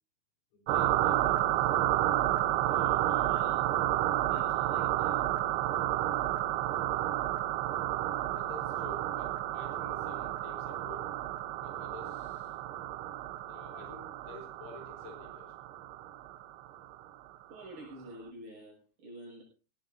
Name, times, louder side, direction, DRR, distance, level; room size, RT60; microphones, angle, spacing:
voice 1, 0.5-1.7 8.3-11.1 11.6-12.6 13.4-15.5, left 4 dB, 80° left, 1 dB, 7.0 m, -50 dB
sound 1, 0.7-16.9, right 13 dB, 75° right, 3.0 m, -31 dB
voice 2, 2.6-3.7 4.3-5.2 17.5-19.4, right 1 dB, 45° right, -1 dB, 8.2 m, -48 dB
19.5 x 17.0 x 2.7 m, 0.34 s
omnidirectional pair, 5.6 m